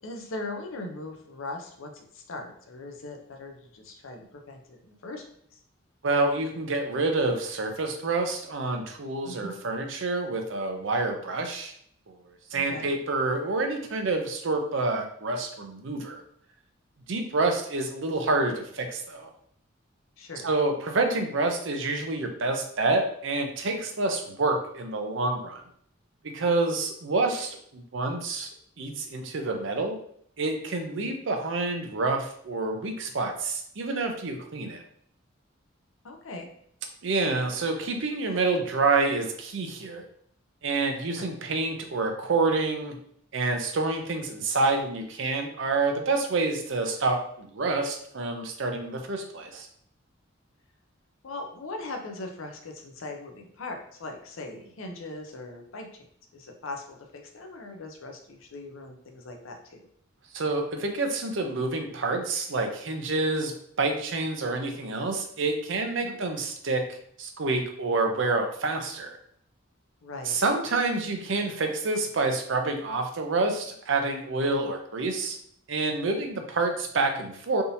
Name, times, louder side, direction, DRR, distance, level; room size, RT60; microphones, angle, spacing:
voice 1, 0.0-5.2 5.5-5.6 9.2-9.5 12.5-12.9 20.2-20.5 31.0-31.1 36.0-36.5 41.2-41.3 51.2-55.9 56.3-59.8 66.0-66.2 70.0-70.4, left 2 dB, 80° left, 3 dB, 0.6 m, -40 dB
voice 2, 6.0-11.7 12.1-12.2 12.5-16.2 17.1-19.3 20.4-25.6 26.2-28.5 28.8-30.0 30.4-34.8 37.0-40.0 40.6-43.0 43.3-49.7 60.3-66.8 67.2-69.2 70.3-75.4 75.7-77.6, right 3 dB, 65° right, 4 dB, 0.6 m, -28 dB
3.5 x 2.7 x 2.7 m, 0.65 s
head